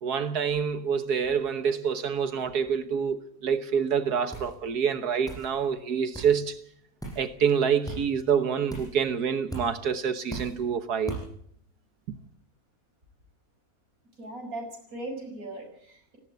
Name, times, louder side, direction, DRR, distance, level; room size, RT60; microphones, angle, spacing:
voice 1, 0.0-6.6 7.2-11.3, right 7 dB, 75° right, 1.7 m, -27 dB
sound 1, 4.3-4.6 5.3-5.5 6.1-6.3 7.0-7.2 7.9-8.0 8.7-9.0 9.5-9.7 10.3-10.6 11.1-11.3, right 2 dB, ahead, 7.7 m, -37 dB
voice 2, 14.2-16.2, right 2 dB, 60° right, 6.4 m, -39 dB
18.5 x 17.0 x 8.3 m
omnidirectional pair, 1.7 m